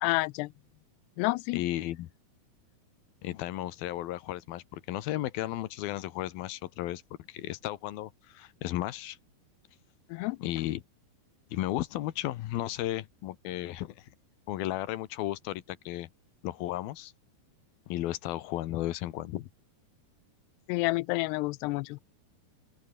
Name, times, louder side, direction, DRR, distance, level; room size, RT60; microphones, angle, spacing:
voice 1, 0.0-0.5 1.2-1.6 10.1-10.4 20.7-22.0, left 23 dB, 90° left, 2.7 m, -29 dB
voice 2, 1.5-2.1 3.2-7.0 7.3-9.2 10.4-10.8 11.5-14.1 14.5-16.1 16.4-17.1 17.9-19.5, left 14 dB, 70° left, 2.7 m, -34 dB
open air
omnidirectional pair, 4.7 m